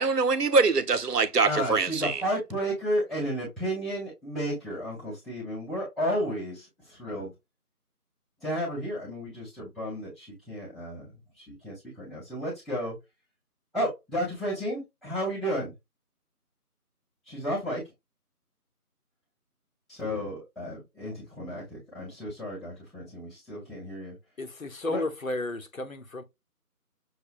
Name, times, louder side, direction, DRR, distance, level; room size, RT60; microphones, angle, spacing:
voice 1, 0.0-2.2, right 4 dB, 85° right, 0.8 m, -24 dB
voice 2, 1.4-7.3 8.4-11.1 11.4-12.9 13.7-15.7 17.3-17.8 19.9-24.1 24.9-25.0, equal, ahead, 0.9 m, -32 dB
voice 3, 24.4-26.2, left 2 dB, 60° left, 1.0 m, -33 dB
6.5 x 2.2 x 2.4 m
figure-of-eight pair, 175°, 46 cm